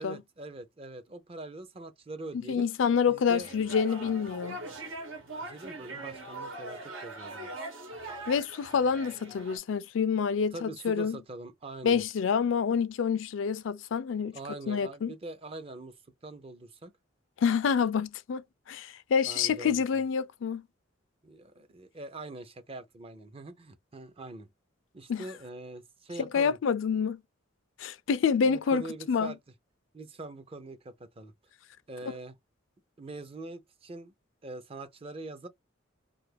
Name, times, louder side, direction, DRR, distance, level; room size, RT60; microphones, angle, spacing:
voice 1, 0.0-2.7 3.1-3.5 5.4-7.6 10.5-12.0 14.3-16.0 16.2-16.9 19.2-19.8 21.2-24.5 24.9-26.6 28.4-29.4 29.9-31.3 31.9-32.3 33.0-34.1 34.4-35.5, right 2 dB, 30° right, 0.5 m, -43 dB
voice 2, 2.5-4.6 8.3-11.2 11.8-14.4 14.7-15.1 17.4-20.6 25.1-25.2 26.3-27.2 27.8-29.3, left 6 dB, 70° left, 0.4 m, -27 dB
sound 1, 3.4-9.6, right 2 dB, 80° right, 1.1 m, -41 dB
2.6 x 2.4 x 3.3 m
head